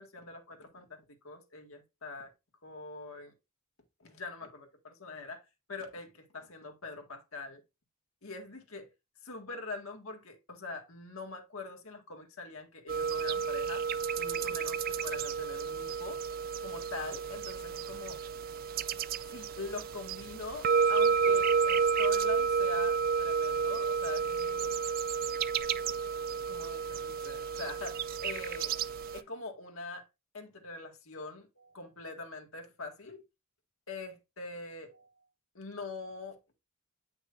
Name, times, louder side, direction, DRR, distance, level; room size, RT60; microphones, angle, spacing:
voice 1, 0.0-2.3 2.6-3.3 4.0-5.4 5.7-7.6 8.2-8.9 9.2-13.8 14.2-16.2 16.6-18.2 19.3-24.8 26.5-28.7 29.1-30.1 30.3-33.2 33.9-35.2 35.6-36.4, left 3 dB, 65° left, 1.8 m, -43 dB
sound 1, 12.9-29.2, right 6 dB, 40° right, 0.3 m, -31 dB
8.3 x 5.9 x 2.6 m
head